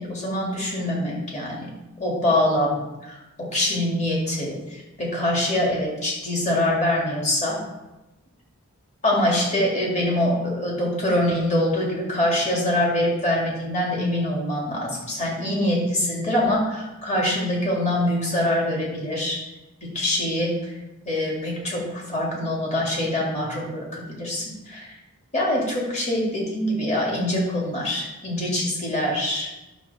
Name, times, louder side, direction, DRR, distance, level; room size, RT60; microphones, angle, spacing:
voice 1, 0.0-1.7 2.0-7.6 9.0-19.4 19.8-20.6 21.1-24.9 25.3-29.5, left 1 dB, 30° left, -3 dB, 2.3 m, -24 dB
11.0 x 6.6 x 4.2 m, 1.0 s
head